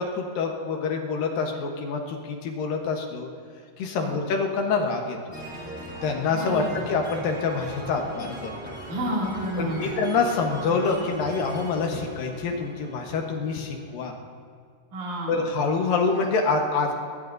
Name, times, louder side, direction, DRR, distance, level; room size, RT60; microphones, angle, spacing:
voice 1, 0.0-3.3 3.8-5.3 6.0-8.8 9.6-14.1 15.3-16.9, left 4 dB, 70° left, 2 dB, 2.8 m, -26 dB
sound 1, 5.3-13.8, right 1 dB, 5° right, 2.9 m, -38 dB
voice 2, 6.3-6.9 8.9-9.9 14.9-15.4, equal, 55° right, -5 dB, 4.0 m, -30 dB
21.5 x 21.5 x 2.7 m, 2.1 s
omnidirectional pair, 4.3 m